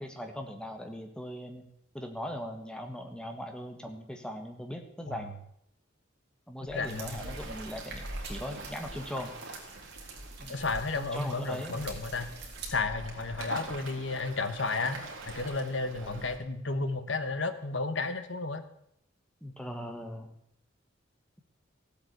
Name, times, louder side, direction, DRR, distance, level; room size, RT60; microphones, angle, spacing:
voice 1, 0.0-1.6 1.9-5.3 6.5-9.3 10.4-10.6 11.0-11.8 16.0-16.2 19.4-20.3, equal, 5° left, 4 dB, 1.6 m, -40 dB
voice 2, 6.7-7.3 10.5-12.3 12.7-15.0 15.3-18.6, left 3 dB, 65° left, 9 dB, 1.4 m, -32 dB
Waves surf, 6.7-16.4, right 2 dB, 80° right, 3.2 m, -43 dB
sound 1, 6.9-12.7, right 6 dB, 55° right, 3.3 m, -48 dB
15.0 x 8.5 x 8.1 m, 0.77 s
head